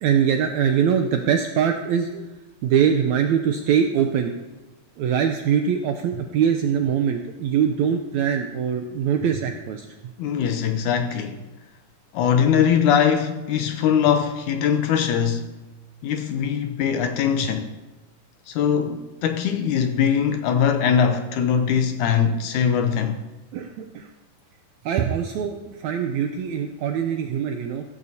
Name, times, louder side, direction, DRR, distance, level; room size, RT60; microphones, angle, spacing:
voice 1, 0.0-2.3 2.6-4.3 5.0-9.9 23.5-24.1 24.8-27.8, right 8 dB, 80° right, 1.6 m, -22 dB
voice 2, 10.2-11.5 12.1-15.5 16.0-17.7 18.5-23.2, left 8 dB, 75° left, 1.9 m, -21 dB
15.0 x 14.5 x 2.8 m
omnidirectional pair, 4.0 m